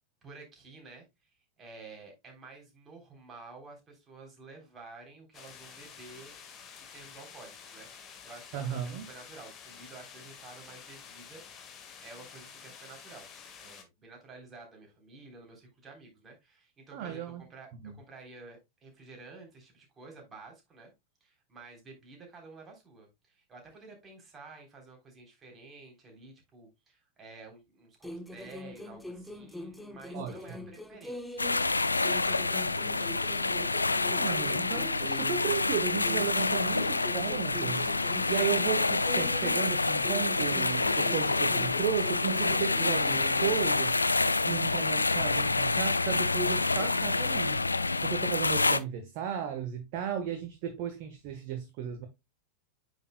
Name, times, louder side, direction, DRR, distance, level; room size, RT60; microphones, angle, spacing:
voice 1, 0.2-6.3 6.8-11.8 12.0-13.3 13.6-20.9 21.2-33.5, right 3 dB, 20° right, 3.5 m, -51 dB
sound 1, 5.3-13.8, left 7 dB, 30° left, 1.6 m, -50 dB
voice 2, 8.5-9.1 16.9-17.4 17.8-17.9 30.1-30.6 34.0-47.7 48.0-52.1, right 8 dB, 45° right, 1.2 m, -35 dB
sound 2, 28.0-31.7 32.0-35.7 36.0-39.7 40.0-43.7, left 2 dB, 5° left, 0.9 m, -43 dB
sound 3, 31.4-48.8, left 3 dB, 80° left, 0.4 m, -28 dB
9.0 x 6.4 x 2.2 m
figure-of-eight pair, 90°, 0 cm